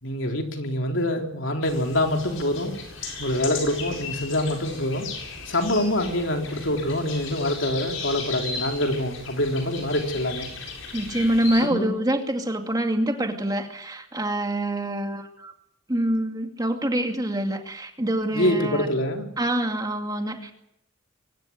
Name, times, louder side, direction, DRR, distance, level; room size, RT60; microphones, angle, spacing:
voice 1, 0.0-2.7 3.2-5.1 5.5-10.5 11.6-11.9 18.3-19.3, left 1 dB, 65° left, 3 dB, 3.7 m, -25 dB
sound 1, 1.6-11.6, left 4 dB, 85° left, 8.0 m, -36 dB
voice 2, 10.9-15.5 15.9-18.9 19.4-20.5, right 1 dB, 20° right, 4 dB, 2.4 m, -26 dB
24.0 x 16.5 x 9.6 m, 0.79 s
head